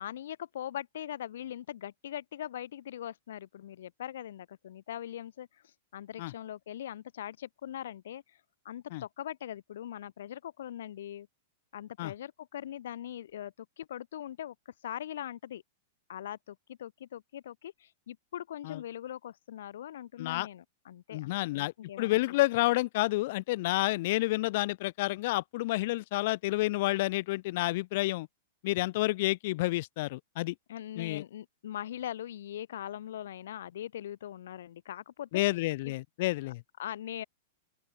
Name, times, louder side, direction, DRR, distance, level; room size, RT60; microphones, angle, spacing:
voice 1, 0.0-8.4 8.6-11.3 11.7-14.5 14.8-15.6 16.1-22.4 30.7-35.4 35.8-35.9 36.8-37.2, left 11 dB, 75° left, 0.9 m, -41 dB
voice 2, 21.1-28.3 28.6-30.5 31.0-31.2 35.3-36.6, left 19 dB, 50° left, 1.1 m, -29 dB
open air
supercardioid pair, 160°, 0 cm